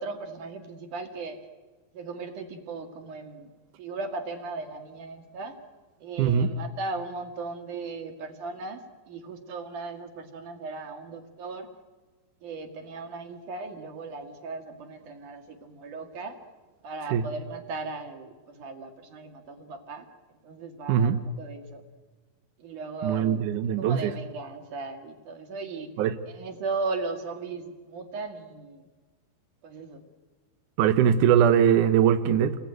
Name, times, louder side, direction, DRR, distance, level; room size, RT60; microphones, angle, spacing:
voice 1, 0.0-1.4 1.9-3.5 3.8-5.6 6.0-11.7 12.4-16.4 16.8-20.1 20.4-21.8 22.6-23.4 23.8-25.9 26.3-28.9 29.6-30.0, right 3 dB, 55° right, 6 dB, 3.4 m, -37 dB
voice 2, 6.2-6.6 17.1-17.2 20.9-21.2 23.0-24.2 26.0-26.2 30.8-32.6, right 9 dB, 70° right, 8 dB, 2.0 m, -21 dB
30.0 x 21.5 x 9.2 m, 1.4 s
omnidirectional pair, 4.7 m